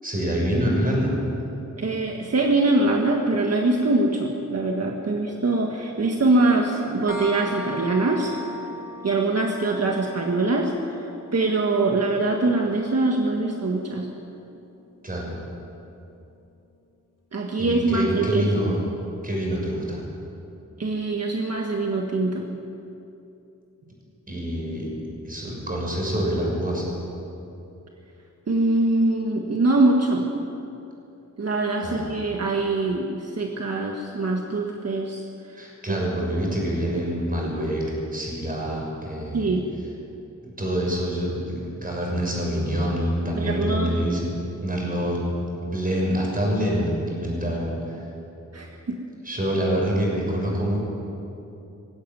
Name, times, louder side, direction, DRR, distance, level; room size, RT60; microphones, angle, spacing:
voice 1, 0.0-1.1 15.0-15.3 17.6-18.8 19.2-20.0 24.3-24.9 25.2-26.9 31.8-32.0 35.6-37.8 38.1-39.5 40.4-44.3 44.6-45.2 45.6-48.0 49.2-50.8, equal, 30° right, -2 dB, 6.4 m, -26 dB
voice 2, 1.8-8.4 9.0-10.7 11.3-14.1 17.3-18.6 20.8-22.5 28.5-30.3 31.4-35.2 35.5-36.0 39.3-39.6 43.3-43.9 48.5-49.0, right 2 dB, 55° right, 1 dB, 1.6 m, -23 dB
sound 1, 7.1-14.5, left 1 dB, 90° left, 1.5 m, -40 dB
20.5 x 16.5 x 9.1 m, 2.8 s
wide cardioid pair, 145°, 31 cm